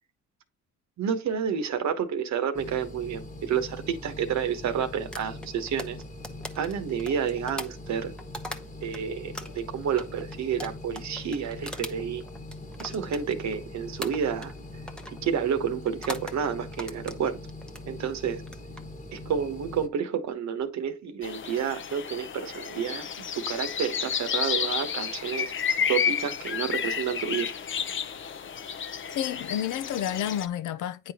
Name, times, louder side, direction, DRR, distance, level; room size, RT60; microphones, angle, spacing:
voice 1, 1.0-6.0 6.5-8.1 8.8-12.2 12.8-14.5 15.2-17.4 17.9-18.4 19.1-25.5 25.9-27.5, right 7 dB, 65° right, 1.0 m, -30 dB
sound 1, 2.5-19.9, left 2 dB, 25° left, 1.2 m, -42 dB
sound 2, 5.1-9.0 9.3-13.6 14.0-14.6 14.9-15.2 15.9-16.4 16.7-17.9 18.4-18.8, left 1 dB, 5° left, 0.7 m, -40 dB
sound 3, 21.2-30.5, left 7 dB, 40° left, 0.6 m, -31 dB
voice 2, 29.2-31.1, left 10 dB, 80° left, 0.6 m, -30 dB
9.4 x 4.0 x 2.8 m
cardioid pair, 90°, 30 cm